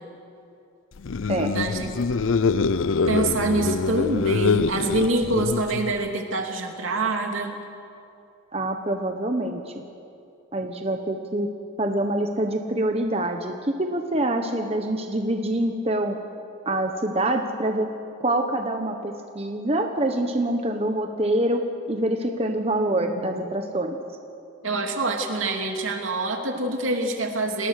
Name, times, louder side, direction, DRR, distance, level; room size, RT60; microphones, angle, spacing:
sound 1, 1.0-6.1, left 4 dB, 80° left, 0.5 m, -24 dB
voice 1, 1.5-1.9 3.1-7.5 23.2-23.4 24.6-27.7, right 2 dB, 80° right, 3 dB, 2.7 m, -25 dB
voice 2, 8.5-9.7 10.5-11.5 11.8-16.2 16.6-17.9 18.2-21.6 21.9-24.0, right 1 dB, 30° right, 4 dB, 1.1 m, -25 dB
29.5 x 19.0 x 6.6 m, 2.6 s
head